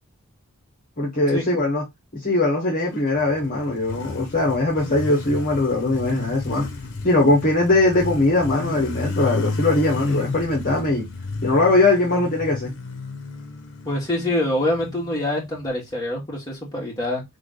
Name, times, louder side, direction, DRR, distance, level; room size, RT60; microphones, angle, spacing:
voice 1, 1.0-1.8 2.1-6.7 7.0-11.0 11.4-12.7, left 2 dB, 40° left, 1.4 m, -20 dB
Motorcycle, 3.0-15.6, left 3 dB, 55° left, 1.0 m, -32 dB
voice 2, 13.9-17.2, left 1 dB, 20° left, 2.1 m, -25 dB
3.7 x 3.6 x 3.8 m
head